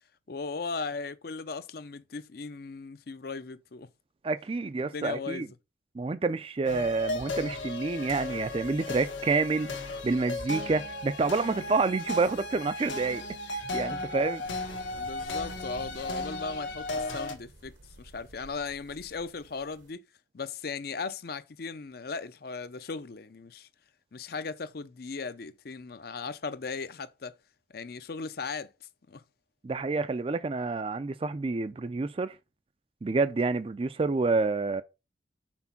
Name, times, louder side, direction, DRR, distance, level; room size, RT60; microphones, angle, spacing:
voice 1, 0.3-3.9 4.8-5.5 14.9-20.1 20.3-23.7 24.1-27.3 27.7-28.7 29.1-29.2, left 4 dB, 55° left, 0.5 m, -37 dB
voice 2, 4.2-5.5 6.0-9.7 10.0-13.2 13.5-14.4 29.6-32.4 33.0-34.8, right 3 dB, 30° right, 0.3 m, -28 dB
sound 1, 6.6-17.3, left 2 dB, 85° left, 1.5 m, -35 dB
sound 2, 14.4-19.9, right 2 dB, 75° right, 1.1 m, -51 dB
6.0 x 4.4 x 5.8 m
head